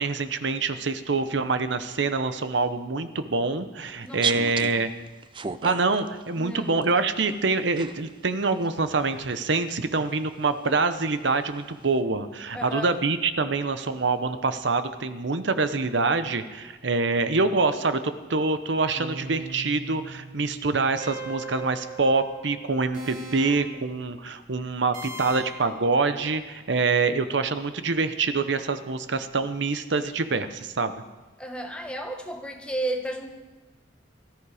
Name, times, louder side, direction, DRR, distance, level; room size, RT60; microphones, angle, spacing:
voice 1, 0.0-4.9 5.6-30.9, right 3 dB, 65° right, 10 dB, 0.8 m, -25 dB
voice 2, 4.0-4.8 6.4-6.9 12.5-12.9 31.4-33.3, right 1 dB, 5° left, 3 dB, 1.4 m, -33 dB
sound 1, 4.1-7.0 7.7-8.3 8.6-9.7 10.6-10.7 11.3-11.5, right 6 dB, 25° right, 0.5 m, -33 dB
sound 2, 17.7-18.2 18.9-24.0 24.9-25.8, right 2 dB, 40° right, 2.4 m, -40 dB
18.5 x 13.5 x 4.9 m, 1.2 s
head